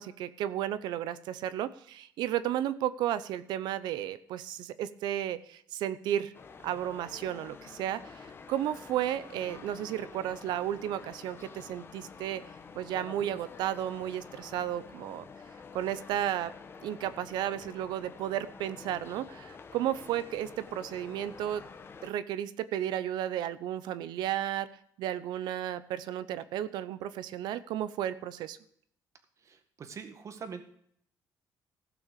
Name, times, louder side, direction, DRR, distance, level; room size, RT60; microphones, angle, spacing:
voice 1, 0.0-6.3 6.6-12.4 12.7-15.3 15.7-16.5 16.8-21.6 22.0-24.7 25.0-28.6, right 11 dB, 85° right, 15 dB, 0.8 m, -33 dB
sound 1, 6.3-22.1, left 5 dB, 30° left, 1.3 m, -49 dB
voice 2, 29.4-30.6, right 6 dB, 45° right, 8 dB, 1.8 m, -44 dB
16.0 x 6.1 x 6.7 m, 0.66 s
cardioid pair, 125°, 7 cm